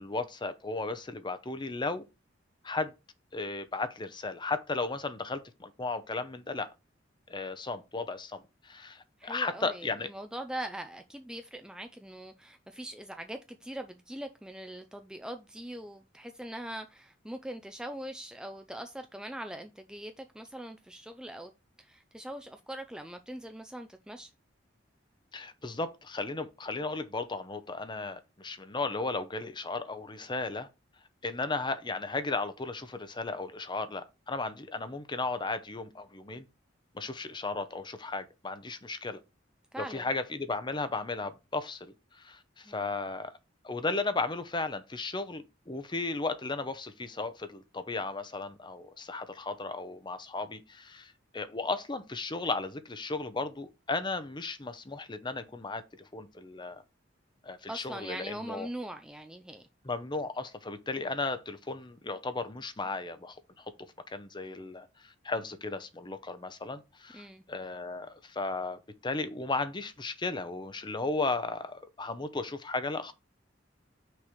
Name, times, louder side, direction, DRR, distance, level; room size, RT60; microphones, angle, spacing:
voice 1, 0.0-2.0 2.6-2.9 3.3-6.7 7.3-10.1 25.3-30.7 31.2-36.5 36.9-39.2 39.8-43.3 43.6-56.8 57.4-58.7 59.8-63.6 64.1-73.1, left 3 dB, 25° left, 0.8 m, -35 dB
voice 2, 9.2-21.5 21.8-24.3 39.7-40.1 42.7-42.8 57.7-59.6 67.1-67.4, right 1 dB, 5° right, 0.4 m, -42 dB
6.2 x 3.3 x 5.8 m
head